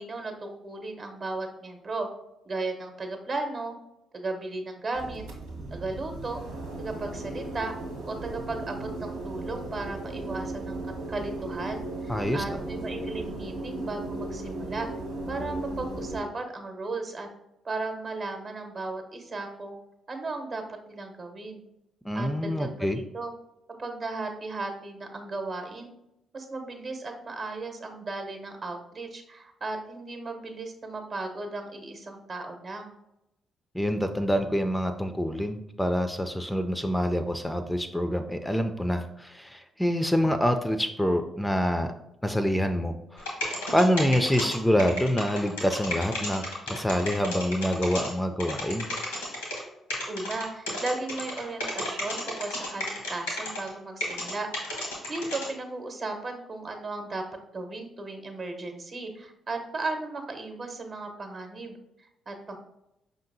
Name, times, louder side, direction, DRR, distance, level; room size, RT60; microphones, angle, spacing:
voice 1, 0.0-2.1 2.4-3.8 4.1-5.2 5.7-6.4 6.8-7.8 8.1-14.9 15.3-17.3 17.6-19.8 20.1-21.6 22.1-23.3 23.8-25.9 26.3-32.9 50.1-54.5 55.1-57.2 57.5-62.6, right 3 dB, 45° right, 5 dB, 0.8 m, -35 dB
sound 1, 4.9-16.2, right 2 dB, 80° right, 0.7 m, -36 dB
voice 2, 12.1-12.6 22.0-23.0 33.7-41.9 42.2-43.3 43.7-48.9, equal, 10° left, 7 dB, 0.3 m, -26 dB
sound 2, 43.2-48.1 48.4-49.6 49.9-53.7 54.0-55.5, left 1 dB, 90° left, 0.9 m, -32 dB
5.1 x 2.7 x 2.6 m, 0.86 s
hypercardioid pair, 40°, 0 cm